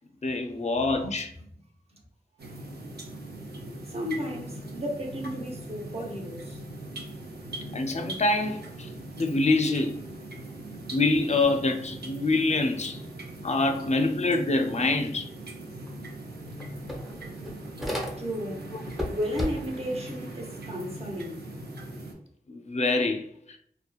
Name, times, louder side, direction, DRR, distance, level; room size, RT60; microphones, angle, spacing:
voice 1, 0.2-1.3 7.7-8.9 9.2-10.0 10.9-13.0 13.4-15.3 22.5-23.6, left 2 dB, 45° left, 0.4 m, -25 dB
sound 1, 2.4-22.1, right 1 dB, 80° right, 0.5 m, -41 dB
voice 2, 3.9-6.6 18.2-18.7 19.1-21.4, equal, 40° right, 0.7 m, -33 dB
sound 2, 15.9-16.0 16.3-18.5 18.8-19.9, left 1 dB, ahead, 0.6 m, -34 dB
2.8 x 2.1 x 2.3 m
wide cardioid pair, 55°, 16 cm